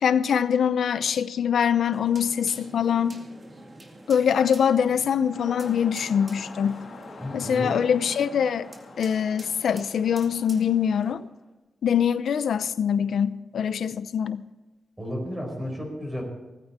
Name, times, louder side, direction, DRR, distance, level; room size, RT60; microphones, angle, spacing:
voice 1, 0.0-3.3 4.1-6.8 7.3-8.7 9.0-11.3 11.8-14.4, left 8 dB, 85° left, 0.6 m, -23 dB
sound 1, 1.9-11.1, right 1 dB, 25° right, 2.2 m, -47 dB
sound 2, 5.3-11.5, left 4 dB, 60° left, 2.6 m, -46 dB
voice 2, 7.2-7.8 15.0-16.2, equal, 10° right, 4.5 m, -32 dB
18.5 x 15.0 x 4.3 m
wide cardioid pair, 180°, 0 cm